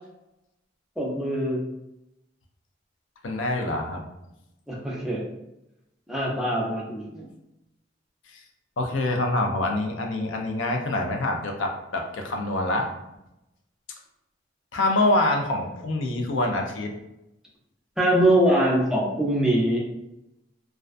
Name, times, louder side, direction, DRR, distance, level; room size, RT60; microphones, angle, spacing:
voice 1, 1.0-1.6 4.7-5.2 6.1-7.3 18.0-19.8, right 1 dB, 5° right, -5 dB, 0.4 m, -23 dB
voice 2, 3.2-4.0 8.3-8.4 8.8-12.9 14.7-16.9, left 2 dB, 85° left, 3 dB, 0.4 m, -25 dB
2.3 x 2.2 x 2.4 m, 0.88 s
head